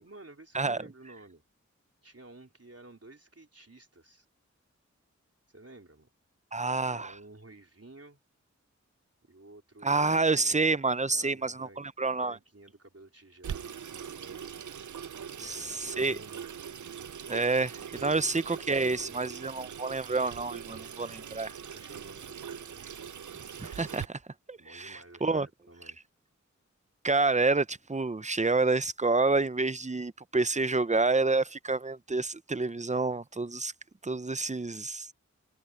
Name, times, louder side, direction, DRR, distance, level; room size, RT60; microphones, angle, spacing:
voice 1, 0.0-1.4 2.0-4.3 5.5-6.1 6.8-8.2 9.2-10.3 11.1-11.8 12.1-14.6 15.4-16.8 18.0-18.4 18.7-19.3 20.9-22.9 24.6-26.0, right 2 dB, 55° right, 3.9 m, -52 dB
voice 2, 6.5-7.1 9.8-12.4 15.4-16.2 17.3-21.5 23.6-24.2 24.5-25.5 27.0-33.7 34.0-35.1, right 3 dB, 25° right, 0.6 m, -28 dB
Water tap faucet / Sink (filling or washing), 13.4-24.1, right 8 dB, 80° right, 0.5 m, -42 dB
wide cardioid pair, 50°, 29 cm